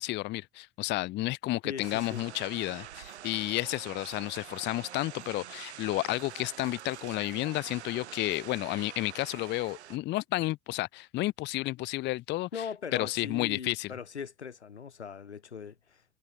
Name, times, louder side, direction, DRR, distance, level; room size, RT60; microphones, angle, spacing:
voice 1, 0.0-12.5 12.9-13.9, left 18 dB, 35° left, 0.4 m, -31 dB
voice 2, 1.6-2.2 12.5-16.0, left 6 dB, 90° left, 0.6 m, -40 dB
sound 1, 1.8-10.0, right 11 dB, 80° right, 0.6 m, -46 dB
figure-of-eight pair, 55°, 33 cm